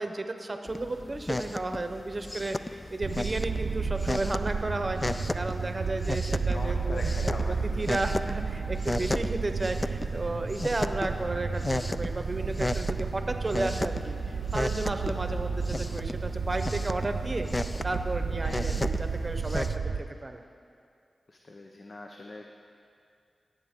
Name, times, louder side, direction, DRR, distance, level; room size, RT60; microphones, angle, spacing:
voice 1, 0.0-17.5 17.8-20.4, right 2 dB, 40° right, 6 dB, 0.8 m, -33 dB
sound 1, 0.7-19.7, left 1 dB, 25° left, 0.3 m, -35 dB
sound 2, 3.0-20.0, right 4 dB, 85° right, 0.5 m, -32 dB
voice 2, 6.5-7.6 18.4-18.7 21.3-22.5, left 2 dB, 55° left, 2 dB, 0.7 m, -41 dB
18.0 x 7.8 x 3.7 m, 2.4 s
cardioid pair, 65°, 0 cm